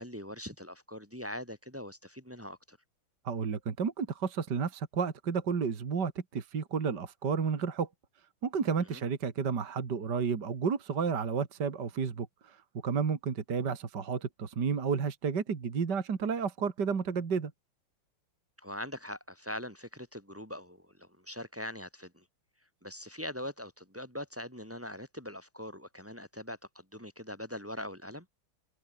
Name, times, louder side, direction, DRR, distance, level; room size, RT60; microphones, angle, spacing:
voice 1, 0.0-2.8 8.8-9.0 18.6-22.2 22.8-28.3, left 1 dB, 5° right, 6.0 m, -42 dB
voice 2, 3.3-7.9 8.4-12.6 12.8-17.5, right 6 dB, 50° right, 2.7 m, -31 dB
omnidirectional pair, 2.4 m